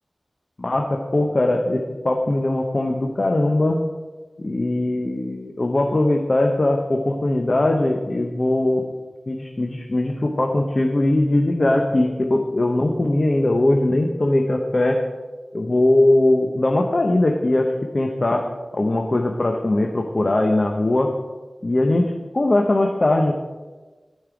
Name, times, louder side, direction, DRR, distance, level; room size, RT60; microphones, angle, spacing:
voice 1, 0.6-3.8 4.4-8.9 9.3-15.0 15.5-18.4 18.7-21.1 21.6-22.1 22.3-23.4, left 1 dB, 45° left, 3 dB, 0.8 m, -20 dB
12.0 x 5.5 x 4.9 m, 1.3 s
wide cardioid pair, 70°, 0 cm